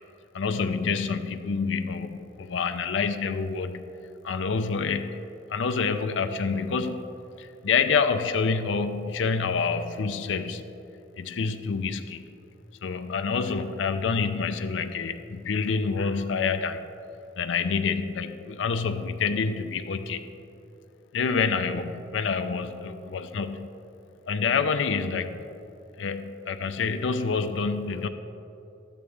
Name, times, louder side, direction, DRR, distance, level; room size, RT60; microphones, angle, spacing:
voice 1, 0.3-3.8 4.2-5.2 5.5-7.1 7.4-10.6 11.2-12.2 12.8-16.8 17.4-20.2 21.1-23.7 24.3-25.4 26.0-28.1, left 5 dB, 85° left, 8 dB, 0.4 m, -27 dB
12.5 x 8.7 x 3.3 m, 2.8 s
head